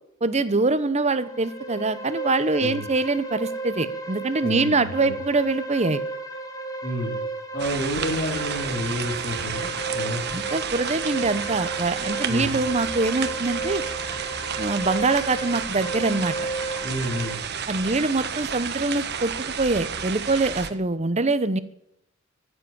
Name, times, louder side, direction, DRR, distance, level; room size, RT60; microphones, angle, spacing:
voice 1, 0.2-6.0 10.3-13.8 14.6-16.3 17.7-21.6, right 3 dB, 35° right, 13 dB, 1.0 m, -24 dB
sound 1, 1.0-17.4, right 2 dB, 15° left, 1.8 m, -34 dB
voice 2, 4.4-5.2 6.8-7.2 7.5-10.4 12.3-12.6 16.8-17.4, left 1 dB, 45° left, -5 dB, 3.9 m, -30 dB
sound 2, 7.6-20.7, right 7 dB, 55° right, 1.3 m, -31 dB
14.5 x 7.9 x 9.6 m, 0.79 s
head